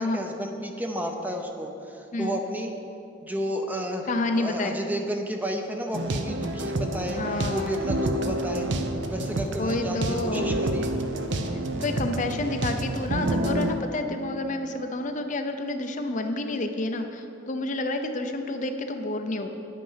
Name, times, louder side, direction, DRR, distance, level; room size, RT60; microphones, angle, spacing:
voice 1, 0.0-2.7 3.2-8.7 9.1-10.9, equal, 10° right, 3 dB, 0.6 m, -32 dB
voice 2, 4.1-4.8 7.1-7.7 9.5-10.6 11.8-19.5, left 2 dB, 40° left, 6 dB, 0.6 m, -29 dB
sound 1, 5.9-13.8, right 1 dB, 60° right, 0.7 m, -28 dB
10.0 x 8.4 x 5.7 m, 2.8 s
head